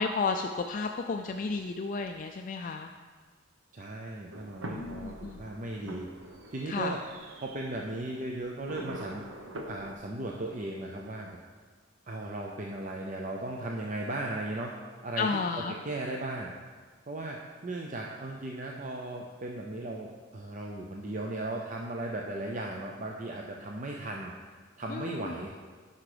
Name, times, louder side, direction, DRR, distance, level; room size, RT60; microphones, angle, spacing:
voice 1, 0.0-2.9 4.7-5.4 5.8-6.0 6.7-7.0 15.2-15.8 24.9-25.3, left 4 dB, 40° left, 5 dB, 0.3 m, -32 dB
voice 2, 3.7-6.1 6.5-7.0 7.4-9.2 9.7-11.3 12.1-14.7 15.0-15.3 15.6-16.5 17.1-24.3 24.8-25.5, right 2 dB, 40° right, 0 dB, 0.6 m, -36 dB
sound 1, 4.3-10.0, right 1 dB, 75° right, 0.9 m, -44 dB
9.8 x 5.8 x 5.0 m, 1.5 s
head